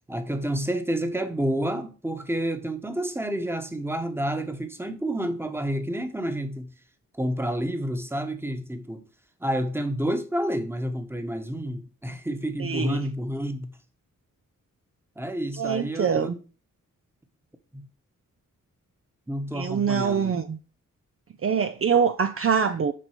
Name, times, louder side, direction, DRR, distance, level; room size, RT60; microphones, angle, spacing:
voice 1, 0.1-6.7 7.1-9.0 9.4-13.7 15.2-16.4 17.7-17.9 19.3-20.3, right 1 dB, 5° right, 1.2 m, -29 dB
voice 2, 12.6-13.0 15.6-16.3 19.5-20.6 21.4-22.9, right 6 dB, 45° right, 0.6 m, -24 dB
7.6 x 5.3 x 5.0 m
wide cardioid pair, 115°, 32 cm